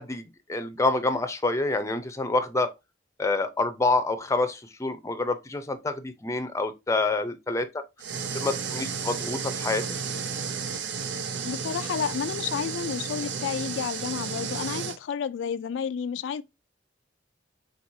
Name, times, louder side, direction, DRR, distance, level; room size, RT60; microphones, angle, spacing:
voice 1, 0.0-2.7 3.2-7.8 8.3-9.9, left 2 dB, 15° left, 0.5 m, -27 dB
sound 1, 8.0-15.0, right 5 dB, 75° right, 0.6 m, -32 dB
voice 2, 11.4-16.4, left 7 dB, 90° left, 0.3 m, -31 dB
4.5 x 4.0 x 2.6 m
head